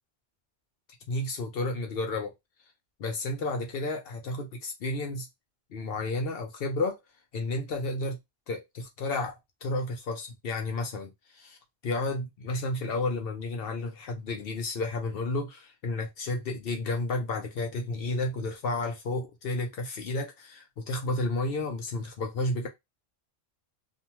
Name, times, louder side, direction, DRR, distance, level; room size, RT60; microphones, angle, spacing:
voice 1, 1.1-2.3 3.0-5.3 5.7-7.0 7.3-8.2 8.5-11.6 11.8-22.7, left 2 dB, 60° left, 0.8 m, -32 dB
2.6 x 2.2 x 2.9 m
omnidirectional pair, 1.1 m